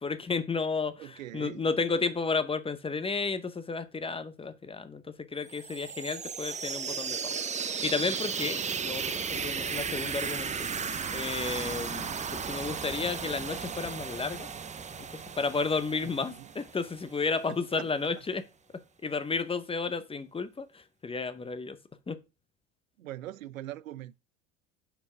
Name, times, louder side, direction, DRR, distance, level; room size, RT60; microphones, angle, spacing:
voice 1, 0.0-7.4 7.8-10.7 11.1-14.5 15.0-15.1 15.4-18.4 18.7-21.8 22.1-22.2, left 4 dB, 15° left, 0.7 m, -32 dB
voice 2, 1.0-1.6 9.2-9.5 16.0-16.5 17.5-17.9 23.0-24.2, right 14 dB, 85° right, 0.5 m, -42 dB
sound 1, 5.5-17.2, right 6 dB, 20° right, 0.7 m, -35 dB
sound 2, 6.5-7.2 8.3-9.1 10.3-10.8 11.8-12.5, right 6 dB, 70° right, 1.9 m, -58 dB
5.6 x 4.6 x 5.5 m
hypercardioid pair, 75°, 39 cm